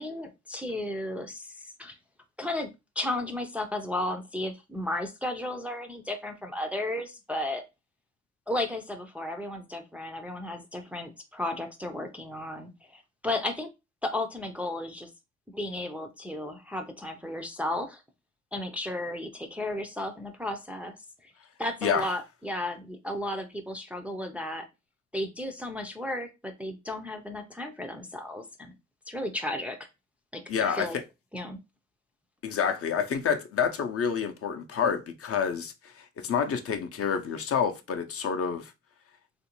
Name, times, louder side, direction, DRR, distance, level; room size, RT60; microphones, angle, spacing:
voice 1, 0.0-2.0 2.4-7.6 8.5-13.7 14.0-15.1 15.5-18.0 18.5-21.0 21.2-21.3 21.6-24.7 25.1-28.7 29.1-29.9 30.3-31.0 31.3-31.6, left 1 dB, 5° right, 0.4 m, -34 dB
voice 2, 30.5-31.0 32.4-38.7, left 7 dB, 50° left, 0.5 m, -28 dB
3.1 x 2.5 x 2.9 m
cardioid pair, 90°, 30 cm